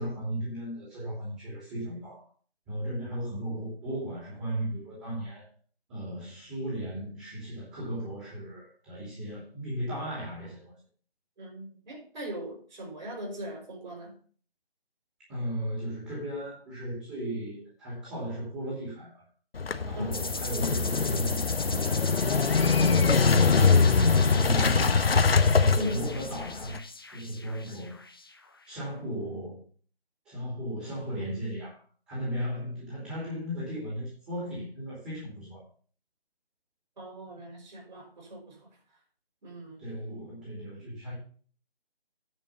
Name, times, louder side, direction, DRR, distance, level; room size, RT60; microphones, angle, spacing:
voice 1, 0.0-2.3 2.7-5.5 5.9-10.7 15.3-19.2 19.8-21.4 21.7-23.7 24.0-25.1 25.6-26.8 27.1-28.0 28.7-29.6 30.2-35.6 39.8-41.1, equal, 10° right, -7 dB, 2.7 m, -36 dB
voice 2, 11.4-14.1 20.0-20.1 25.7-26.1 37.0-38.7 39.4-39.8, equal, 45° right, -1 dB, 5.5 m, -39 dB
Motorcycle / Engine starting, 19.6-26.8, left 5 dB, 70° left, 1.0 m, -23 dB
sound 1, 20.1-28.6, left 3 dB, 25° left, 0.6 m, -39 dB
9.9 x 5.4 x 6.9 m, 0.43 s
figure-of-eight pair, 165°, 30 cm